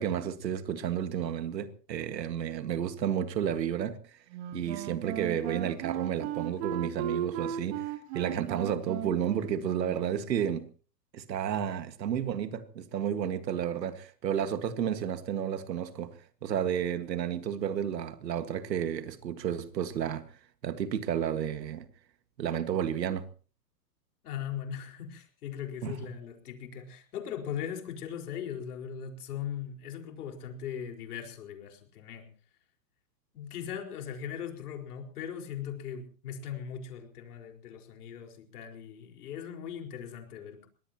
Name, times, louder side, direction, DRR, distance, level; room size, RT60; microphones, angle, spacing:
voice 1, 0.0-4.2 4.5-10.7 11.1-20.3 20.6-21.9 22.4-23.3 25.8-26.0, right 9 dB, 80° right, 2.0 m, -32 dB
Wind instrument woodwind instrument, 4.3-10.2, right 10 dB, 40° right, 2.8 m, -36 dB
voice 2, 24.2-32.3 33.3-40.7, left 8 dB, 65° left, 4.9 m, -39 dB
24.5 x 20.0 x 3.0 m
hypercardioid pair, 150°, 49 cm